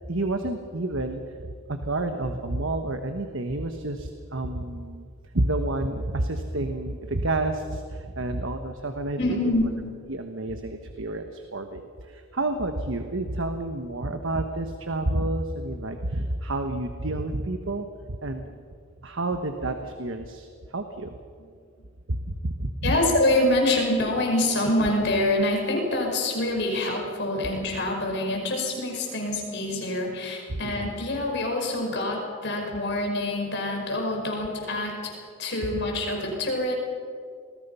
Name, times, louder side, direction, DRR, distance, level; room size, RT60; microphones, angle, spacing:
voice 1, 0.1-5.1 5.3-9.4 10.1-18.4 19.0-20.5 20.7-21.2 22.1-22.9 30.5-30.9, right 2 dB, 65° right, 6 dB, 1.3 m, -29 dB
voice 2, 9.2-9.7 22.8-35.1 35.4-36.7, left 1 dB, 55° left, 1 dB, 5.5 m, -26 dB
27.5 x 20.5 x 5.7 m, 2.2 s
head